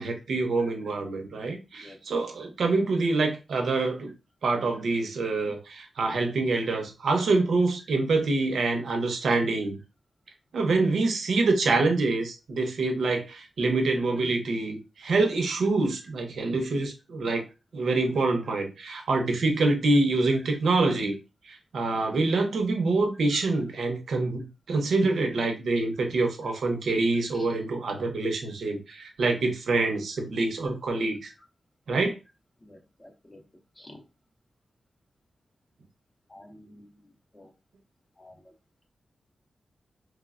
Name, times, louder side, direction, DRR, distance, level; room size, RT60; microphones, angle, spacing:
voice 1, 0.0-4.1 4.4-9.8 10.5-17.4 17.7-21.2 21.5-31.3 31.9-32.2, right 3 dB, 75° right, 4 dB, 0.5 m, -26 dB
voice 2, 1.8-2.2 27.3-27.5 32.6-33.4 33.8-34.0 36.3-36.9 37.3-37.5 38.2-38.5, left 1 dB, 15° left, 2 dB, 0.5 m, -50 dB
3.0 x 2.0 x 2.3 m, 0.28 s
wide cardioid pair, 180°, 0 cm